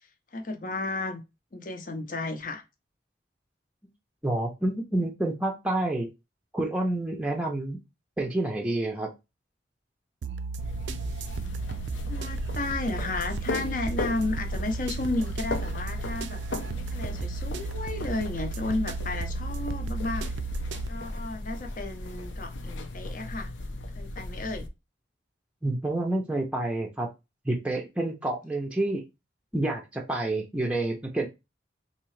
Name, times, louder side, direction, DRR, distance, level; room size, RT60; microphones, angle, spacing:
voice 1, 0.3-1.2 1.5-2.6 12.0-16.4 16.7-20.4 20.9-23.5 24.0-24.7, left 2 dB, 45° left, 0.6 m, -33 dB
voice 2, 4.2-6.1 6.5-7.8 8.2-9.1 25.6-27.1 27.4-29.0 29.5-31.3, right 2 dB, 5° right, 0.5 m, -28 dB
sound 1, 10.2-20.9, right 5 dB, 75° right, 0.4 m, -35 dB
sound 2, 10.6-24.7, left 1 dB, 85° left, 0.6 m, -36 dB
3.6 x 2.8 x 3.1 m
head